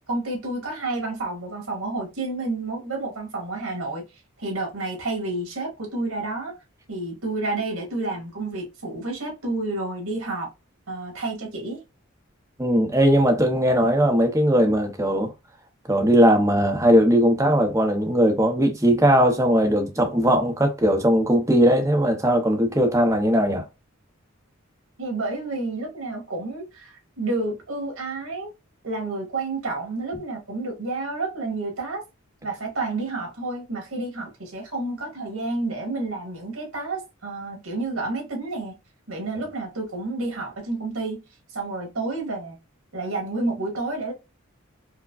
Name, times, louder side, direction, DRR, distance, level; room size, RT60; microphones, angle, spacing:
voice 1, 0.1-4.0 4.4-6.5 6.9-10.5 10.9-11.8 25.0-28.5 28.8-32.0 32.4-38.8 39.1-41.2 41.5-42.6 42.9-44.1, right 2 dB, 80° right, 1.7 m, -30 dB
voice 2, 12.6-15.3 15.9-23.6, equal, 15° right, 0.7 m, -19 dB
4.6 x 2.2 x 2.4 m
head